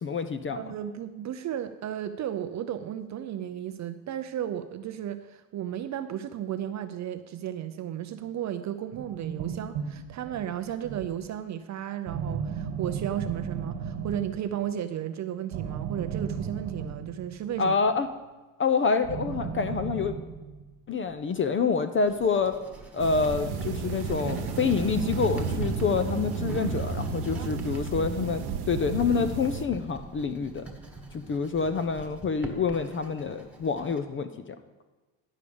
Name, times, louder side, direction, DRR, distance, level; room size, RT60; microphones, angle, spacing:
voice 1, 0.0-0.6 17.6-18.1 18.6-20.1 20.9-22.6 22.9-30.7 31.1-34.3, left 5 dB, 30° left, 9 dB, 0.5 m, -27 dB
voice 2, 0.6-17.8 27.3-27.5, right 10 dB, 40° right, 10 dB, 0.5 m, -34 dB
sound 1, 8.9-11.3 12.1-14.6 15.5-17.6 19.0-20.7, right 7 dB, 70° right, 1.5 m, -35 dB
Writing, 22.1-34.0, right 2 dB, 5° right, 1.3 m, -45 dB
sound 2, 23.0-29.6, right 5 dB, 85° right, 1.0 m, -32 dB
11.0 x 4.9 x 7.0 m, 1.2 s
cardioid pair, 110°, 42 cm